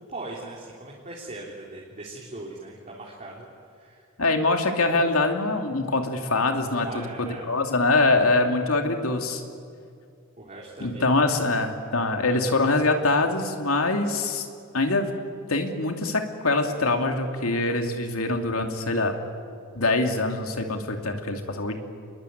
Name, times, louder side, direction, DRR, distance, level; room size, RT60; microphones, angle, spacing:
voice 1, 0.1-3.5 3.8-4.0 4.9-5.0 6.7-7.5 10.4-11.1, right 2 dB, 35° right, -4 dB, 3.5 m, -39 dB
voice 2, 4.2-9.4 10.8-14.5 14.7-15.1 15.5-19.1 19.7-21.8, left 2 dB, 90° left, 4 dB, 2.7 m, -24 dB
27.5 x 21.5 x 9.4 m, 2.3 s
head